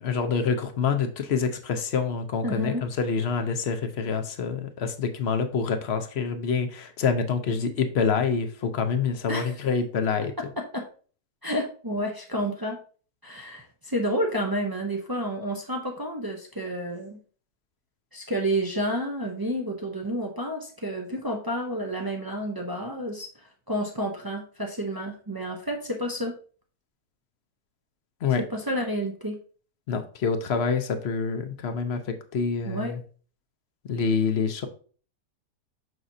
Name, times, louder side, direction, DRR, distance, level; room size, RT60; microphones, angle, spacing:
voice 1, 0.0-10.3 28.2-28.4 29.9-33.0 33.9-34.7, left 5 dB, 55° left, 7 dB, 0.8 m, -26 dB
voice 2, 2.4-2.9 9.3-9.6 10.6-10.9 11.4-12.8 13.2-17.2 18.1-23.3 23.7-26.4 28.4-29.4 32.7-33.0, equal, 35° right, 1 dB, 0.3 m, -30 dB
6.4 x 6.0 x 2.7 m, 0.41 s
omnidirectional pair, 1.7 m